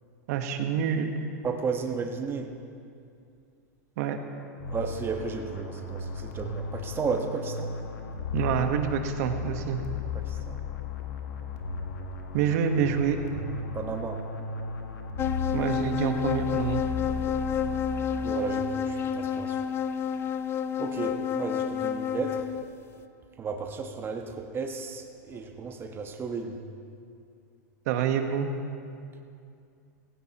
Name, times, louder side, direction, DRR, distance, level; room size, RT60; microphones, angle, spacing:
voice 1, 0.3-1.1 4.0-4.2 8.3-9.8 12.3-13.2 15.5-16.8 27.9-28.5, right 8 dB, 65° right, 6 dB, 1.3 m, -27 dB
voice 2, 1.4-2.5 4.7-7.7 10.2-10.6 13.7-14.2 17.3-17.4 18.2-19.6 20.8-22.4 23.4-26.6, right 5 dB, 25° right, 4 dB, 1.3 m, -33 dB
sound 1, 4.6-18.7, left 4 dB, 80° left, 1.4 m, -36 dB
sound 2, 15.2-22.7, left 7 dB, 25° left, 0.5 m, -30 dB
17.0 x 16.0 x 3.0 m, 2.5 s
hypercardioid pair, 115°, 9 cm